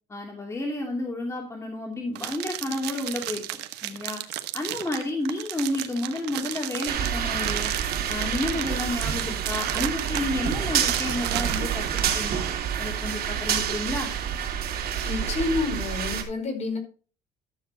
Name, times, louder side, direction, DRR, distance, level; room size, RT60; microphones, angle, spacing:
voice 1, 0.1-3.4 3.8-4.2 4.5-7.7 8.1-12.5 12.8-14.1, left 2 dB, 15° left, 0 dB, 2.5 m, -31 dB
sound 1, 2.1-12.2, right 14 dB, 85° right, 1.2 m, -34 dB
Giant Covered Scaffold Devon UK Interior sel, 6.9-16.2, right 8 dB, 60° right, 2.9 m, -28 dB
voice 2, 15.0-16.8, left 3 dB, 40° left, 3 dB, 4.6 m, -28 dB
12.5 x 7.2 x 4.3 m, 0.39 s
cardioid pair, 110°, 17 cm